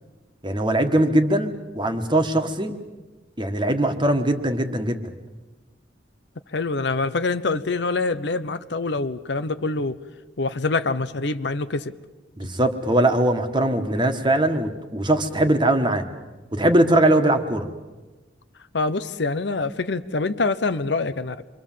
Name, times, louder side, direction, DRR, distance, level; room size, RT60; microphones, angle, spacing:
voice 1, 0.4-2.7 3.4-5.1 12.4-16.0 16.5-17.7, right 1 dB, 25° right, 6 dB, 1.6 m, -21 dB
voice 2, 6.5-10.0 10.4-11.9 18.7-21.4, left 3 dB, 65° left, 12 dB, 0.8 m, -25 dB
27.0 x 23.5 x 7.5 m, 1.2 s
head